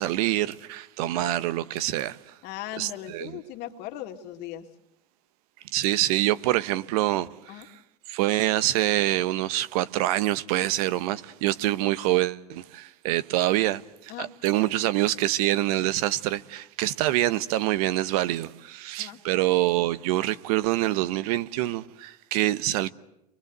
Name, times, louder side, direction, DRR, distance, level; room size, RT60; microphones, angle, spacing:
voice 1, 0.0-2.2 2.8-3.4 5.7-7.6 8.1-22.9, right 15 dB, 60° right, 1.1 m, -26 dB
voice 2, 2.4-4.7 7.5-7.7 14.1-14.3 19.0-19.2, left 12 dB, 50° left, 2.3 m, -38 dB
29.0 x 23.5 x 8.0 m
hypercardioid pair, 100°, 21 cm